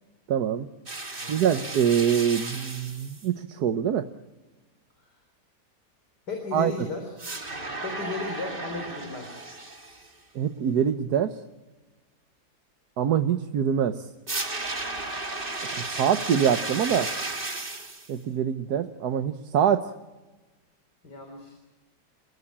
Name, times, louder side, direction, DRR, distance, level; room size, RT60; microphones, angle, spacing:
voice 1, 0.3-0.7 1.3-4.1 6.5-6.7 10.3-11.4 13.0-14.1 15.7-17.1 18.1-19.9, right 8 dB, 70° right, 9 dB, 1.5 m, -24 dB
sound 1, 0.9-3.3 7.2-10.1 14.3-18.1, right 2 dB, 30° right, 2.4 m, -34 dB
voice 2, 1.2-1.5 5.0-5.2 6.3-7.1 7.8-9.4 21.0-21.5, left 3 dB, 80° left, 3 dB, 4.2 m, -35 dB
29.5 x 17.0 x 8.7 m, 1.2 s
omnidirectional pair, 1.8 m